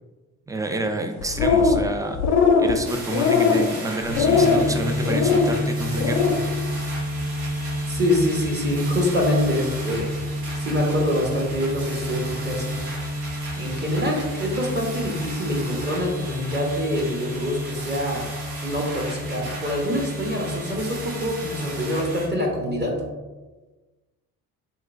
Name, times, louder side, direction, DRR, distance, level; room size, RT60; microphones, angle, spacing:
voice 1, 0.5-6.4, right 1 dB, 10° right, 5 dB, 0.3 m, -29 dB
sound 1, 1.2-1.9 2.2-2.7 3.1-3.7 4.1-4.6 5.1-5.5 5.9-6.4, left 5 dB, 80° left, 0.6 m, -19 dB
sound 2, 2.8-22.3, right 2 dB, 80° right, 1.2 m, -37 dB
sound 3, 4.1-23.1, equal, 60° right, 0.6 m, -31 dB
voice 2, 7.9-10.1 10.6-12.8 13.6-18.3 18.6-22.9, left 1 dB, 30° right, -1 dB, 0.8 m, -25 dB
3.0 x 3.0 x 2.5 m, 1.2 s
supercardioid pair, 60°, 37 cm